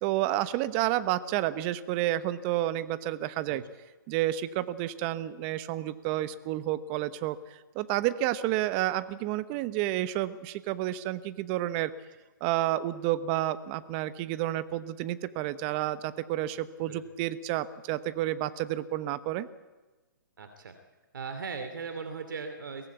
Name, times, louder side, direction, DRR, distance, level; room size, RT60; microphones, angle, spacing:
voice 1, 0.0-3.6 4.1-7.4 7.7-11.9 12.4-19.5, right 14 dB, 30° right, 13 dB, 1.0 m, -30 dB
voice 2, 20.4-20.7 21.1-22.9, right 5 dB, 70° right, 8 dB, 2.7 m, -38 dB
23.0 x 18.0 x 8.2 m, 1.2 s
hypercardioid pair, 140°, 11 cm